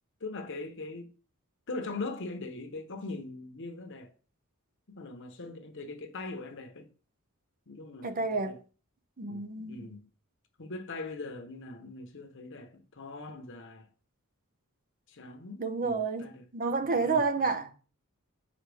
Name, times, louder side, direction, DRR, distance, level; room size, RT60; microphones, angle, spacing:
voice 1, 0.2-1.1 1.7-4.1 4.9-6.9 7.7-8.6 9.2-10.1 10.6-13.9 15.1-16.4 16.8-17.6, left 3 dB, 55° left, 1.1 m, -41 dB
voice 2, 8.0-8.6 9.2-9.9 15.6-16.3 16.5-17.7, right 4 dB, 40° right, 0.7 m, -30 dB
7.2 x 5.0 x 3.5 m
head